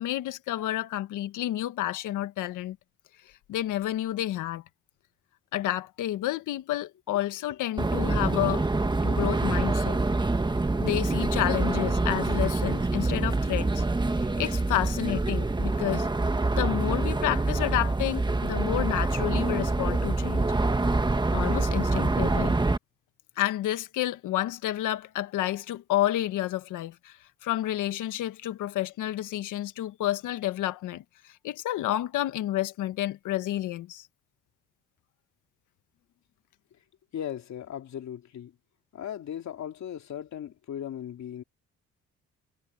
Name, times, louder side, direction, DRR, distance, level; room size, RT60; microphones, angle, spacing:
voice 1, 0.0-2.8 3.5-4.6 5.5-8.6 9.0-10.0 10.8-13.8 14.4-16.1 16.6-20.5 21.3-22.6 23.4-34.1, left 14 dB, 85° left, 1.5 m, -30 dB
sound 1, 7.8-22.8, right 2 dB, 15° right, 1.4 m, -26 dB
voice 2, 37.1-38.6 38.9-41.4, left 10 dB, 65° left, 3.1 m, -37 dB
cardioid pair, 90°, 30 cm